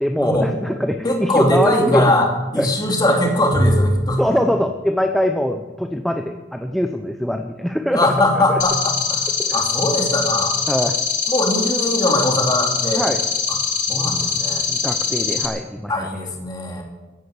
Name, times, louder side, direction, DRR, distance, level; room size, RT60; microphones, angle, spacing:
voice 1, 0.0-2.1 2.5-2.7 4.2-8.4 9.4-9.6 10.7-11.0 12.9-13.2 14.7-16.2, equal, ahead, 5 dB, 0.7 m, -23 dB
voice 2, 1.0-4.2 7.9-10.6 11.3-13.0 13.5-13.6 13.9-14.6 15.9-16.8, left 1 dB, 25° left, 1 dB, 3.0 m, -20 dB
Bowed string instrument, 3.5-5.9, equal, 65° right, 6.3 m, -25 dB
sound 1, 8.6-15.5, left 6 dB, 45° left, 2.6 m, -23 dB
16.0 x 10.5 x 8.1 m, 1.1 s
head